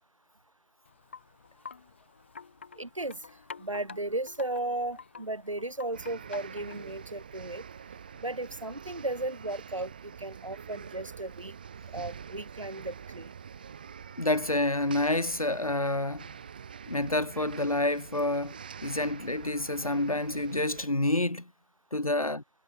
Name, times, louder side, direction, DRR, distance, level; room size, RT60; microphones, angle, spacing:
Wind chime, 0.8-7.0, left 5 dB, 20° left, 6.0 m, -48 dB
voice 1, 2.8-3.2 3.6-7.6 8.2-9.9 10.2-11.6 11.9-13.3, right 2 dB, 50° right, 7.5 m, -35 dB
sound 1, 5.9-20.8, right 7 dB, 15° right, 7.0 m, -46 dB
voice 2, 14.2-16.3 16.9-21.5 21.9-22.4, left 2 dB, 60° left, 3.4 m, -28 dB
figure-of-eight pair, 170°, 20 cm